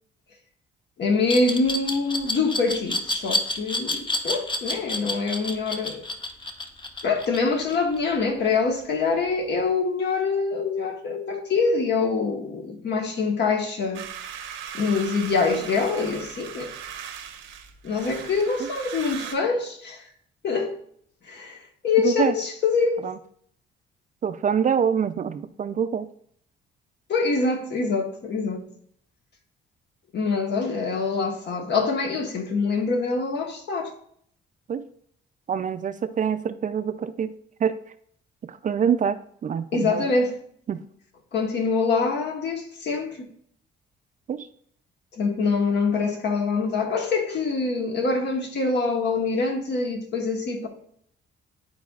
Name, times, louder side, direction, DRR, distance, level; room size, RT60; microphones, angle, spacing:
voice 1, 1.0-6.0 7.0-14.0 14.7-16.7 17.8-20.0 20.4-20.8 21.3-21.6 21.8-23.0 27.1-28.6 30.1-33.9 39.7-40.4 41.3-43.3 45.2-50.7, left 4 dB, 60° left, 1.3 m, -25 dB
Glass, 1.3-8.1, left 2 dB, 25° left, 0.9 m, -28 dB
sound 1, 13.9-19.4, right 8 dB, 90° right, 0.9 m, -38 dB
voice 2, 22.0-22.3 23.0-23.2 24.2-26.1 34.7-34.8 35.5-37.3 37.6-37.8 38.4-40.1 40.7-40.8 44.3-44.5, right 7 dB, 40° right, 0.4 m, -25 dB
11.5 x 4.2 x 2.4 m
cardioid pair, 90°, 20 cm